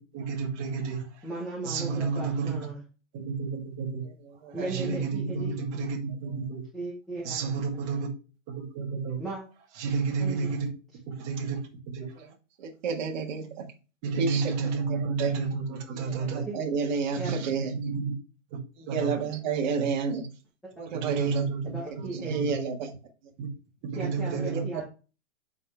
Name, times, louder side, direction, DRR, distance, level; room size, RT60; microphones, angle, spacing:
voice 1, 0.1-1.1 1.6-2.6 3.1-4.0 4.7-6.6 7.2-8.1 8.5-9.2 9.8-10.7 11.1-11.6 11.9-12.1 14.0-16.5 17.1-18.1 18.5-18.6 18.9-19.1 19.8-19.9 20.9-22.6 23.4-23.5 23.9-24.6, right 5 dB, 20° right, -2 dB, 1.8 m, -31 dB
voice 2, 1.2-2.8 4.5-5.5 6.7-7.6 9.2-9.4 10.2-10.5 16.5-16.6 17.1-17.4 20.6-21.0 21.6-22.4 23.9-24.8, right 2 dB, ahead, -6 dB, 1.0 m, -37 dB
voice 3, 12.6-13.6 14.2-14.4 14.9-15.3 16.0-17.7 18.9-20.2 20.8-21.4 22.2-22.9, right 5 dB, 35° right, 0 dB, 1.7 m, -30 dB
7.7 x 5.6 x 3.3 m, 0.33 s
hypercardioid pair, 180°, 38 cm